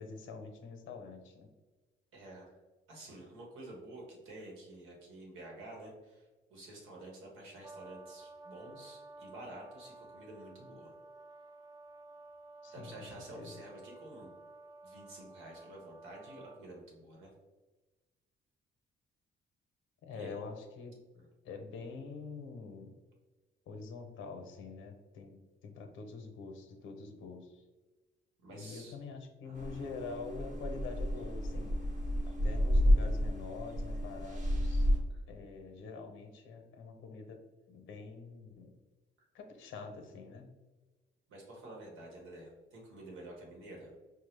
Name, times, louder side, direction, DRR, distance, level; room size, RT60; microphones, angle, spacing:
voice 1, 0.0-1.5 12.6-13.6 20.0-21.0 21.4-22.9 23.7-25.4 25.6-27.6 28.5-31.8 32.3-34.9 35.3-37.4 37.7-38.8 39.3-40.5, left 4 dB, 80° left, 5 dB, 0.7 m, -46 dB
voice 2, 2.1-2.5 2.9-10.9 12.7-14.3 14.8-17.3 20.1-20.4 21.1-21.2 28.4-28.9 29.4-29.6 35.1-35.2 41.3-43.9, right 1 dB, 85° right, -2 dB, 1.3 m, -50 dB
Brass instrument, 7.6-16.6, right 2 dB, 20° right, 0.4 m, -53 dB
sound 1, 29.5-35.0, equal, 40° right, 0.9 m, -31 dB
4.6 x 2.1 x 3.2 m, 1.2 s
cardioid pair, 90°, 20 cm